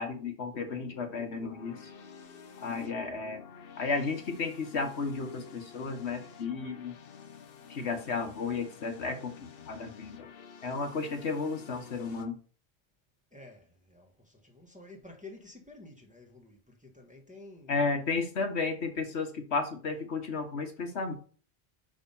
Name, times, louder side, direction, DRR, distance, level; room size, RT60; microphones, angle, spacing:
voice 1, 0.0-1.9 2.6-3.5 3.8-7.0 7.7-10.3 10.6-12.4 17.7-21.1, left 4 dB, 75° left, 1.6 m, -33 dB
sound 1, 0.5-12.3, left 6 dB, 60° left, 1.0 m, -50 dB
voice 2, 13.3-17.8, left 2 dB, 5° right, 1.2 m, -51 dB
5.7 x 5.1 x 5.4 m
omnidirectional pair, 1.1 m